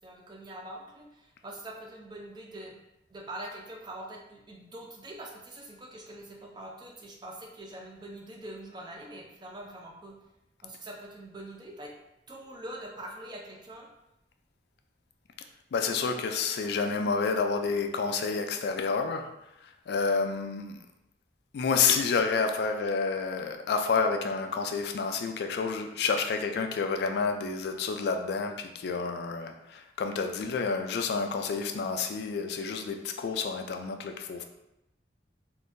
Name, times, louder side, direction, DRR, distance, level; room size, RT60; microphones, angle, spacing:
voice 1, 0.0-2.8 3.1-10.1 10.6-11.9 12.3-13.9, right 1 dB, 25° right, 0 dB, 0.5 m, -44 dB
voice 2, 15.7-19.3 19.9-20.8 21.5-34.4, left 5 dB, 60° left, 5 dB, 0.3 m, -29 dB
3.5 x 2.6 x 2.6 m, 0.88 s
head